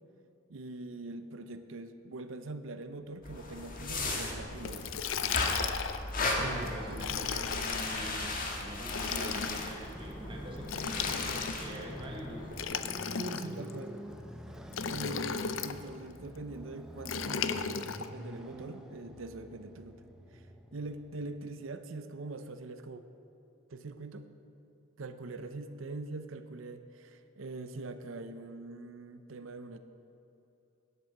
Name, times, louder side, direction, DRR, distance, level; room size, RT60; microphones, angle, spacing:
voice 1, 0.5-4.9 6.4-7.1 13.2-14.0 14.8-20.0 20.3-23.0 23.7-24.2 25.0-29.8, right 2 dB, 70° right, 10 dB, 0.6 m, -43 dB
sound 1, 3.2-12.6, left 2 dB, 40° left, 1.6 m, -36 dB
Liquid, 4.6-6.1 6.9-8.0 8.8-9.7 10.6-11.8 12.5-13.7 14.7-15.8 17.0-18.1, left 7 dB, 70° left, 0.5 m, -35 dB
voice 2, 6.3-10.9 11.6-12.5, equal, 25° right, -1 dB, 1.4 m, -44 dB
Motorcycle, 7.7-21.5, equal, 5° right, 0.6 m, -48 dB
11.0 x 8.1 x 7.1 m, 2.9 s
head